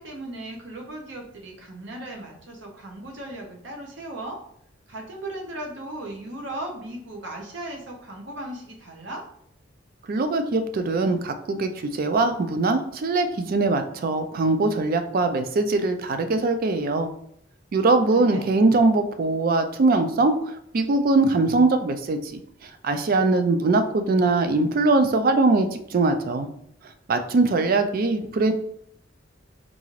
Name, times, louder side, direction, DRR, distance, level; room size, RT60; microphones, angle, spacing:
voice 1, 0.0-4.4 4.9-9.2 18.1-18.4, right 1 dB, 65° right, 1 dB, 0.7 m, -37 dB
voice 2, 10.1-17.1 17.7-20.3 20.7-22.4 22.8-26.5 27.1-28.5, right 3 dB, 50° right, 8 dB, 0.4 m, -21 dB
3.9 x 2.4 x 3.1 m, 0.69 s
head